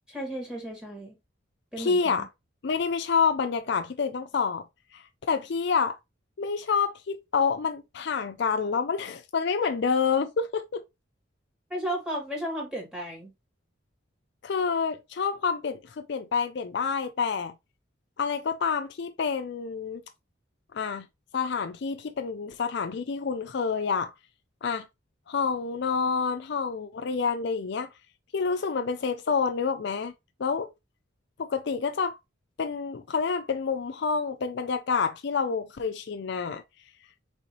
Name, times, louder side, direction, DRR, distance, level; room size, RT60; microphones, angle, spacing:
voice 1, 0.1-1.2 1.7-2.3 11.7-13.3, right 1 dB, 5° right, 2.0 m, -34 dB
voice 2, 1.8-2.3 2.6-4.6 4.9-6.0 6.4-10.8 14.4-17.5 18.2-20.0 20.7-21.1 21.3-24.1 24.6-24.9 25.3-27.9 28.3-30.1 30.4-30.7 31.4-32.2 32.6-36.6, left 5 dB, 60° left, 0.4 m, -28 dB
4.3 x 3.7 x 3.0 m
head